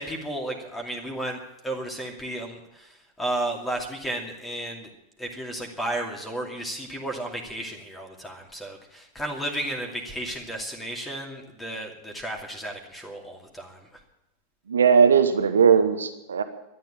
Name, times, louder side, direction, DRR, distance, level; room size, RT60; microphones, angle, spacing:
voice 1, 0.0-4.9 5.2-13.8, right 1 dB, 10° left, 2 dB, 2.5 m, -33 dB
voice 2, 14.7-16.4, right 6 dB, 70° right, 9 dB, 1.0 m, -18 dB
13.5 x 10.0 x 8.7 m, 0.91 s
figure-of-eight pair, 90°, 0 cm